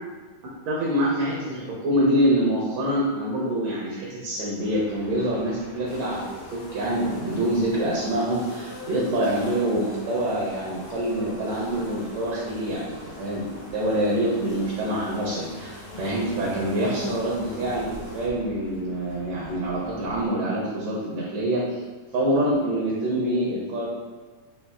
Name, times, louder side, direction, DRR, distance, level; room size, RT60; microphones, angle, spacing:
voice 1, 0.7-6.2 6.5-21.8 22.1-23.9, right 1 dB, 75° right, -4 dB, 1.6 m, -26 dB
sound 1, 4.6-20.3, left 1 dB, 55° right, 0.5 m, -47 dB
sound 2, 5.9-18.3, left 1 dB, 75° left, 1.6 m, -41 dB
5.1 x 2.4 x 2.3 m, 1.4 s
omnidirectional pair, 3.4 m